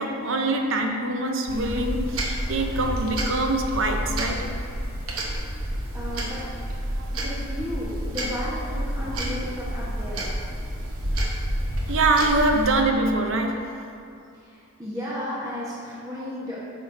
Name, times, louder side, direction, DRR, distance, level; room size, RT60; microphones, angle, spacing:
voice 1, 0.0-4.5 7.0-7.1 11.9-13.8, right 2 dB, 65° right, 4 dB, 0.7 m, -24 dB
sound 1, 1.5-12.7, right 1 dB, 80° right, 1.0 m, -29 dB
voice 2, 5.9-6.4 7.1-10.3 14.4-16.6, left 1 dB, 15° right, -8 dB, 1.1 m, -34 dB
9.1 x 6.1 x 2.7 m, 2.5 s
head